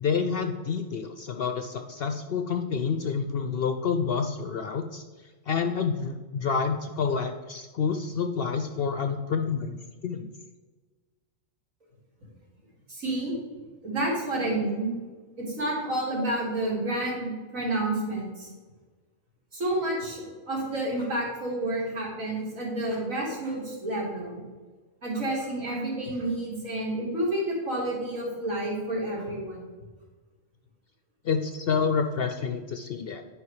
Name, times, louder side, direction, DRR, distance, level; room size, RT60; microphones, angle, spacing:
voice 1, 0.0-5.0 5.5-10.3 31.2-33.2, left 6 dB, 60° left, 7 dB, 0.6 m, -28 dB
voice 2, 12.9-13.3 13.8-14.9 15.4-18.5 19.5-24.4 25.0-29.6, right 1 dB, 75° right, -4 dB, 3.0 m, -30 dB
10.0 x 5.1 x 4.8 m, 1.4 s
omnidirectional pair, 1.4 m